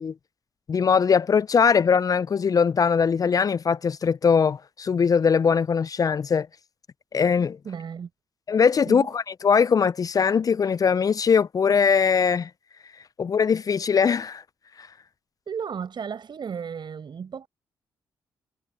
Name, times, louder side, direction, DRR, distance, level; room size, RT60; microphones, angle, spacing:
voice 1, 0.7-6.5 7.1-7.6 8.5-12.5 13.2-14.4 14.8-14.9, left 6 dB, 40° left, 0.4 m, -21 dB
voice 2, 7.6-8.1 8.8-9.1 15.5-17.5, right 7 dB, 60° right, 7.7 m, -34 dB
supercardioid pair, 55°, 9 cm